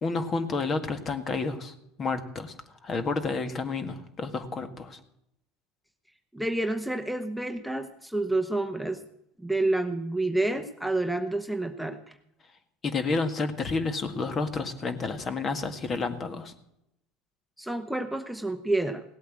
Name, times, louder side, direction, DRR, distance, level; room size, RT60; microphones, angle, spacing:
voice 1, 0.0-2.5 2.8-5.0 12.8-16.5, left 4 dB, 35° left, 9 dB, 1.8 m, -30 dB
voice 2, 6.3-9.0 9.4-12.0 17.6-19.0, right 2 dB, ahead, 5 dB, 1.0 m, -29 dB
17.0 x 8.5 x 7.6 m, 0.81 s
supercardioid pair, 95°, 0 cm